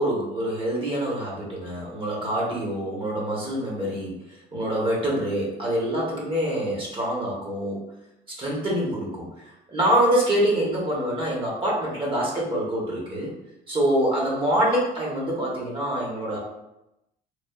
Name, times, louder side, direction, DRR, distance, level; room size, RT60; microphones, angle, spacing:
voice 1, 0.0-4.1 4.5-7.8 8.3-13.3 13.7-16.4, right 1 dB, 30° right, -4 dB, 0.8 m, -25 dB
3.1 x 2.0 x 2.2 m, 0.89 s
cardioid pair, 110°, 17 cm